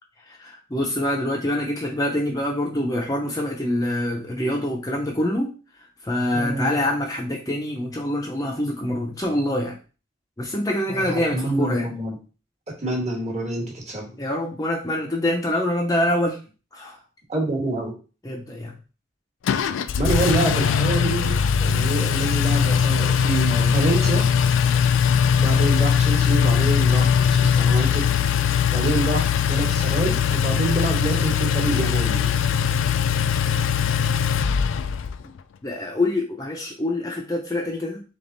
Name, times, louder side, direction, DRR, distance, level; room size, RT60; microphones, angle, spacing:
voice 1, 0.3-5.5 6.0-9.8 10.4-11.9 14.2-16.4 16.7-17.0 18.2-18.7 35.2-35.3 35.6-38.0, left 1 dB, 20° left, 0 dB, 0.6 m, -25 dB
voice 2, 6.3-6.8 10.9-12.2 12.8-14.1 17.3-17.9 19.9-21.3 21.6-24.3 25.3-28.1 28.7-32.3 32.7-32.8, right 2 dB, 35° right, 0 dB, 1.3 m, -26 dB
Engine, 19.5-35.2, left 7 dB, 90° left, 0.3 m, -20 dB
3.5 x 3.4 x 3.9 m, 0.34 s
head